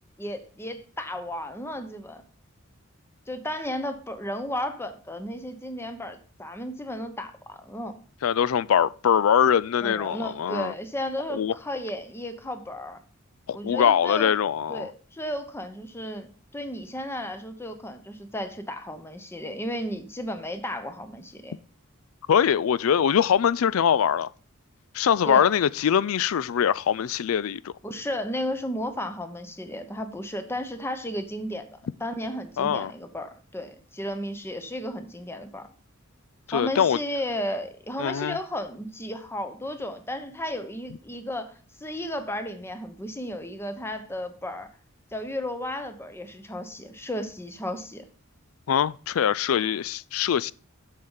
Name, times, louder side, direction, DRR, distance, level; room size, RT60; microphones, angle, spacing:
voice 1, 0.2-2.2 3.3-7.9 9.8-13.0 13.5-14.3 14.7-21.5 25.2-25.5 27.8-31.7 32.0-35.7 36.5-44.7 45.1-48.0, left 1 dB, 10° left, 1.0 m, -34 dB
voice 2, 8.2-10.7 11.3-11.5 13.5-14.9 22.3-24.3 24.9-27.7 32.6-32.9 36.5-37.0 38.0-38.4 48.7-50.5, left 8 dB, 75° left, 0.4 m, -23 dB
7.7 x 6.5 x 5.6 m
head